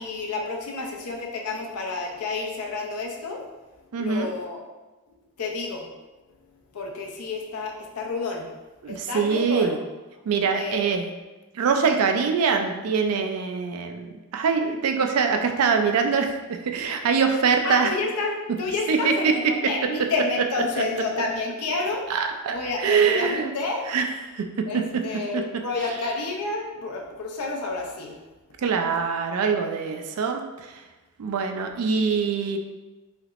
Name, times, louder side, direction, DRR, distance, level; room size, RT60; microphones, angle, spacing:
voice 1, 0.0-3.4 4.0-4.6 5.4-5.9 6.7-8.5 8.9-9.7 10.5-10.9 17.6-22.0 22.5-23.9 24.7-28.2, left 3 dB, 80° left, 0 dB, 0.6 m, -30 dB
voice 2, 3.9-4.3 8.8-9.8 10.3-11.1 11.5-17.9 18.9-19.3 22.1-23.5 23.9-24.1 24.3-24.4 24.7-24.8 25.3-25.4 28.6-30.4 31.2-32.6, right 5 dB, 75° right, 5 dB, 0.4 m, -23 dB
3.3 x 2.8 x 2.4 m, 1.2 s
head